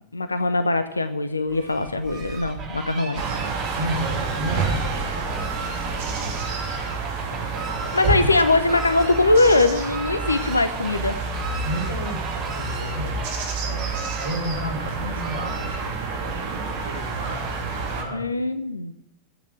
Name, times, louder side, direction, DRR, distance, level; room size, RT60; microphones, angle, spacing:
voice 1, 0.1-3.2 7.9-11.2 18.1-18.9, left 2 dB, 80° left, 11 dB, 0.8 m, -21 dB
Fowl, 1.5-16.2, right 4 dB, 30° right, 3.9 m, -37 dB
sound 1, 3.2-18.0, right 4 dB, 50° right, 3.3 m, -29 dB
voice 2, 3.7-6.5 7.1-8.1 11.6-13.2 13.6-18.3, right 1 dB, 70° right, 1 dB, 4.8 m, -33 dB
14.0 x 9.2 x 7.6 m, 0.70 s
figure-of-eight pair, 90°, 0 cm